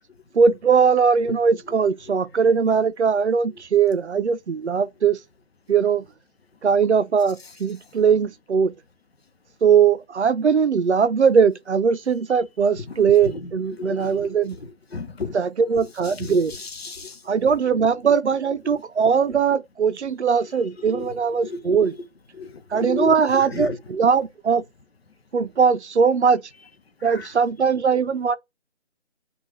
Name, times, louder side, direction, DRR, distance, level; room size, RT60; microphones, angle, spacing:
voice 1, 0.4-5.2 5.7-6.0 6.6-8.7 9.6-14.6 15.3-16.5 17.3-21.9 22.7-24.6 25.3-26.4 27.0-28.4, right 6 dB, 65° right, 0.6 m, -20 dB
voice 2, 12.8-15.4 15.8-17.5 18.6-18.8 20.8-21.1 21.4-21.9 22.3-23.8 27.0-27.3, left 3 dB, 55° left, 0.8 m, -34 dB
6.0 x 2.4 x 3.1 m
figure-of-eight pair, 165°, 36 cm